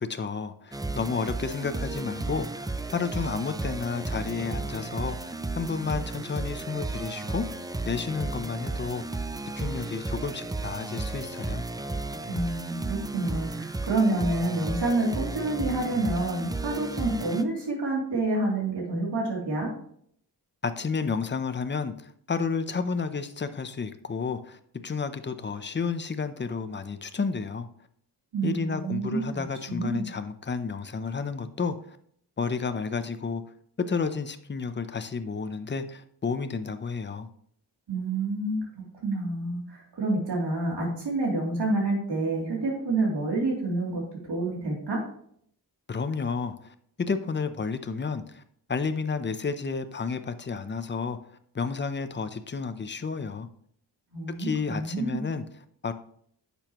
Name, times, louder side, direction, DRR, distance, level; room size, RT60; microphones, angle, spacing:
voice 1, 0.0-2.7 2.9-7.5 7.9-9.2 9.6-11.6 20.6-27.7 28.4-32.0 32.4-33.4 33.8-37.3 45.9-48.4 48.7-51.2 51.5-53.5 54.4-55.9, left 5 dB, 25° left, 10 dB, 0.6 m, -31 dB
sound 1, 0.7-17.4, right 3 dB, 10° right, 0.3 m, -34 dB
voice 2, 12.3-19.7 28.3-29.4 29.7-30.0 37.9-38.6 39.0-44.0 44.3-45.0 54.1-55.2, right 2 dB, 75° right, -2 dB, 3.0 m, -28 dB
10.5 x 7.0 x 3.0 m, 0.66 s
wide cardioid pair, 130°, 41 cm